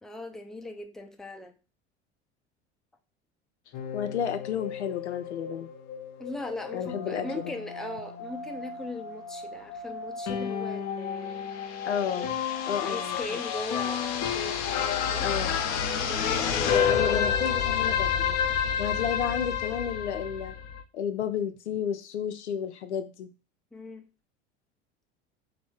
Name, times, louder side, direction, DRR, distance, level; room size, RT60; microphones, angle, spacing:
voice 1, 0.0-1.6 6.2-11.5 12.8-15.3 16.0-17.2 23.7-24.1, left 2 dB, ahead, 0.5 m, -39 dB
sound 1, 3.7-20.8, left 7 dB, 50° left, 0.7 m, -30 dB
voice 2, 3.9-5.7 6.7-7.4 11.8-12.3 12.7-13.4 15.2-15.6 16.7-18.4 18.8-20.5 20.9-23.3, left 8 dB, 80° left, 0.5 m, -32 dB
3.1 x 2.7 x 4.4 m
figure-of-eight pair, 70°, 33 cm